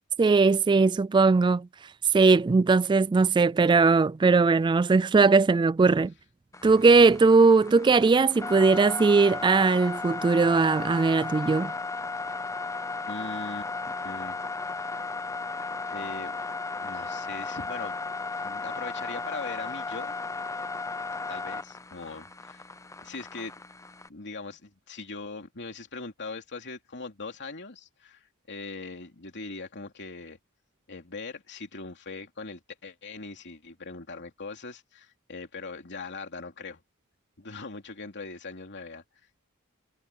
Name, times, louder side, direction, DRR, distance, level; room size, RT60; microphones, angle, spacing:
voice 1, 0.2-1.7 2.1-6.1 6.6-11.7, right 4 dB, 20° right, 0.3 m, -20 dB
sound 1, 6.5-24.1, left 3 dB, 15° left, 0.6 m, -35 dB
voice 2, 13.1-13.7 14.0-14.4 14.7-15.0 15.9-16.3 16.8-18.0 18.4-20.2 21.3-22.6 23.0-23.5 24.1-30.4 30.9-36.8 37.4-39.0, left 3 dB, 55° left, 3.1 m, -40 dB
head